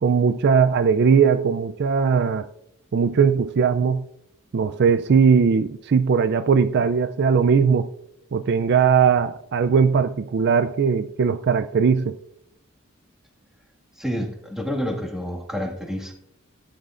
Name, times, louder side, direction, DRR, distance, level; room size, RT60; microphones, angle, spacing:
voice 1, 0.0-2.5 2.9-4.0 4.5-7.9 8.3-12.2, right 6 dB, 50° right, 0.4 m, -19 dB
voice 2, 14.0-16.1, equal, ahead, 1.8 m, -29 dB
17.0 x 10.5 x 2.5 m
head